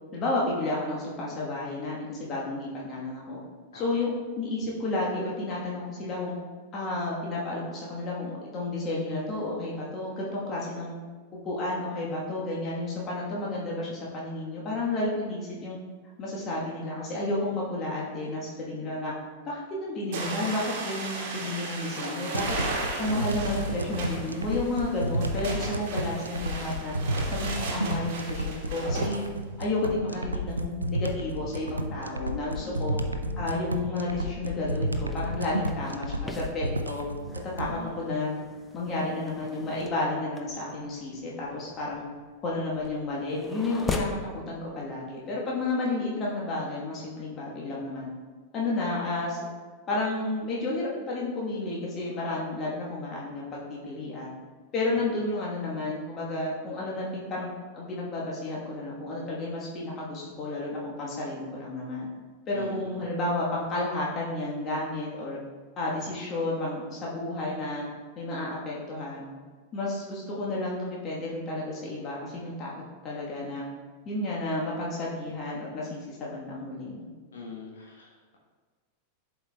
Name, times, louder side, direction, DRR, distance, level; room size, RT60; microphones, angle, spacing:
voice 1, 0.1-3.4 3.7-6.3 6.7-10.9 11.4-15.8 16.2-19.1 19.5-22.6 23.0-26.9 27.3-29.2 29.6-33.0 33.4-37.1 37.4-38.4 38.7-42.0 42.4-48.1 48.5-49.4 49.9-54.3 54.7-62.1 62.5-65.4 65.8-67.8 68.2-69.3 69.7-72.7 73.0-73.6 74.0-77.1, left 2 dB, 30° left, -5 dB, 1.3 m, -31 dB
sound 1, 20.1-29.1, right 3 dB, 50° right, 1.4 m, -36 dB
sound 2, 22.3-37.8, right 1 dB, 80° right, 0.4 m, -31 dB
voice 2, 32.6-33.3 37.7-38.0 54.9-55.1 62.5-63.0 77.3-78.3, left 4 dB, 65° left, -3 dB, 1.1 m, -43 dB
sound 3, 34.6-44.3, left 3 dB, 10° left, 0.6 m, -40 dB
11.0 x 4.5 x 2.3 m, 1.4 s
figure-of-eight pair, 90°, 0 cm